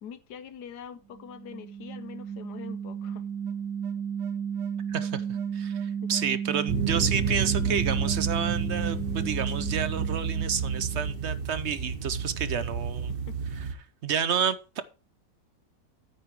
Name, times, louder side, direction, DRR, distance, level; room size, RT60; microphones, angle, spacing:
voice 1, 0.0-3.2 5.3-5.4 6.0-6.1 13.1-13.5, left 8 dB, 75° left, 1.5 m, -44 dB
sound 1, 1.1-11.3, right 7 dB, 80° right, 1.5 m, -33 dB
voice 2, 4.9-13.1 13.6-13.7 14.0-14.8, right 7 dB, 60° right, 0.7 m, -30 dB
sound 2, 6.7-13.7, right 5 dB, 40° right, 1.0 m, -30 dB
9.3 x 7.5 x 4.7 m
omnidirectional pair, 1.8 m